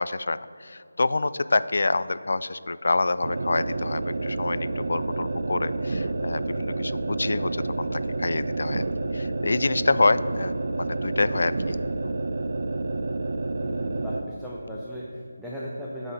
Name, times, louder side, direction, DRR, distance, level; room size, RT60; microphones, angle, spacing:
voice 1, 0.0-7.5 7.8-8.9 9.1-11.8 12.0-12.2, left 3 dB, 60° left, 15 dB, 0.3 m, -27 dB
sound 1, 3.2-14.3, right 2 dB, 55° right, 0.5 m, -29 dB
voice 2, 13.6-16.1, equal, ahead, -8 dB, 0.5 m, -36 dB
9.4 x 4.1 x 6.6 m, 2.4 s
figure-of-eight pair, 170°, 0 cm